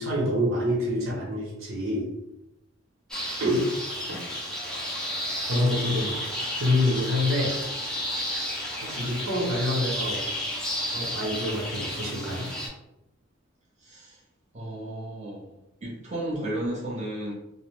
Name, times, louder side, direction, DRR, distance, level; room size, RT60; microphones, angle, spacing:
voice 1, 0.0-2.1 3.4-3.7 4.1-4.2 5.5-6.2 6.6-7.6 8.8-10.3 10.9-12.5, left 1 dB, 85° right, -3 dB, 0.9 m, -26 dB
sound 1, 3.1-12.7, equal, 5° left, 0.4 m, -32 dB
voice 2, 13.8-14.2 14.5-15.5 15.8-17.3, right 1 dB, 35° right, -5 dB, 0.7 m, -33 dB
2.7 x 2.0 x 3.2 m, 0.89 s
head